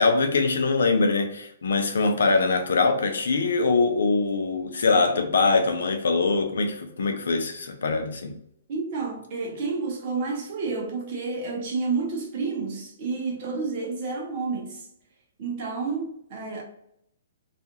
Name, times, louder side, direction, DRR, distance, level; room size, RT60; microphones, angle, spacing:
voice 1, 0.0-8.3, left 3 dB, 85° left, 0.6 m, -23 dB
voice 2, 8.7-14.9 15.4-16.6, right 4 dB, 30° right, 0.7 m, -30 dB
2.5 x 2.3 x 2.8 m
hypercardioid pair, 180°, 0 cm